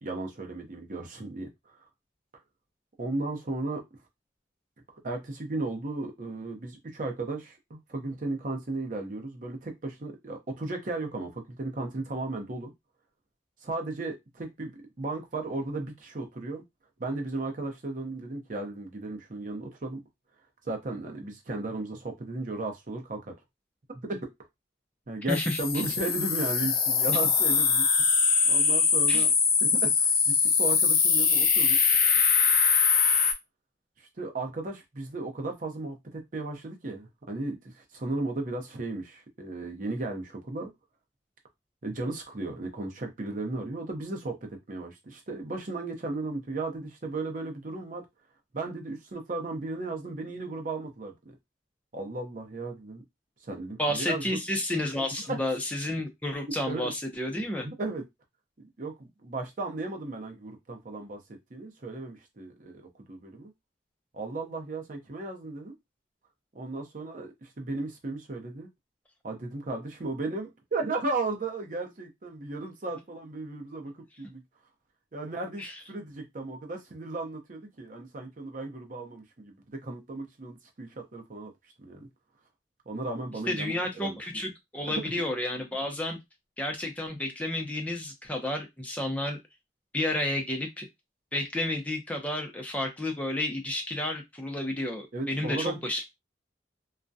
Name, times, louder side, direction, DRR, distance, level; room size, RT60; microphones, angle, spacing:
voice 1, 0.0-1.8 3.0-3.8 4.9-12.7 13.6-14.7 15.0-16.6 17.0-20.0 20.6-23.3 23.9-24.2 25.1-27.9 28.5-29.3 29.6-31.8 34.0-40.7 41.8-48.0 48.5-51.3 51.9-53.0 53.4-54.4 55.3-55.4 56.7-56.9 57.6-58.0 58.8-61.2 61.5-63.5 64.1-65.7 66.5-68.7 69.2-74.4 75.1-79.6 79.8-81.5 81.8-82.1 82.9-84.2 95.1-95.8, right 2 dB, 45° right, 0.6 m, -35 dB
sound 1, 25.3-33.3, left 5 dB, 50° left, 0.5 m, -23 dB
voice 2, 25.3-25.9 29.1-29.3 53.8-57.7 75.6-75.7 83.5-86.2 86.6-89.4 89.9-90.9 91.3-96.0, left 1 dB, 10° left, 0.5 m, -31 dB
2.3 x 2.1 x 2.6 m
head